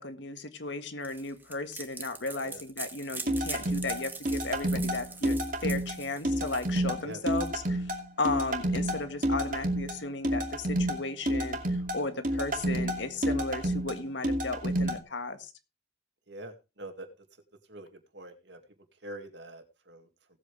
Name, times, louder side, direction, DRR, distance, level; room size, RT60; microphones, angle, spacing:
voice 1, 0.0-7.8 8.2-11.6 11.9-15.5, left 3 dB, 75° left, 9 dB, 1.7 m, -35 dB
sound 1, 1.0-7.5, right 3 dB, 10° right, 1.5 m, -42 dB
sound 2, 3.3-15.0, right 1 dB, 45° right, 2.6 m, -30 dB
voice 2, 16.3-17.1 17.7-17.9 18.1-18.6 19.0-20.1, right 1 dB, 70° right, 6 dB, 2.3 m, -44 dB
18.0 x 8.3 x 3.3 m, 0.28 s
head